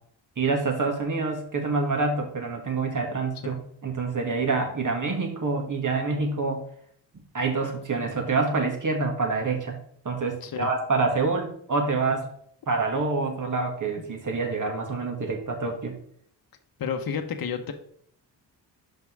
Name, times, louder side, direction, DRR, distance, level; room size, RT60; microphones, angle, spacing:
voice 1, 0.4-3.6 3.8-6.6 7.3-9.8 10.0-12.3 12.7-15.9, right 3 dB, 45° right, 2 dB, 2.3 m, -26 dB
voice 2, 16.8-17.7, left 6 dB, 50° left, 6 dB, 1.1 m, -31 dB
5.9 x 5.2 x 4.8 m, 0.63 s
supercardioid pair, 55°, 44 cm